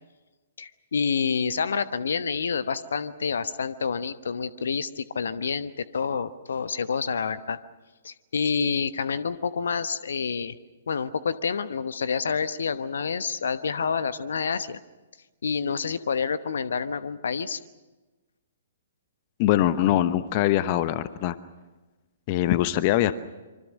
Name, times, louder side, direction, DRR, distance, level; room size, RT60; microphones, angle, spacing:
voice 1, 0.6-7.6 8.0-10.5 10.9-14.8 15.4-17.6, left 6 dB, 60° left, 14 dB, 1.0 m, -28 dB
voice 2, 19.4-21.4 22.3-23.1, left 13 dB, 35° left, 14 dB, 0.9 m, -22 dB
25.5 x 24.5 x 6.5 m, 1.2 s
figure-of-eight pair, 120°, 0 cm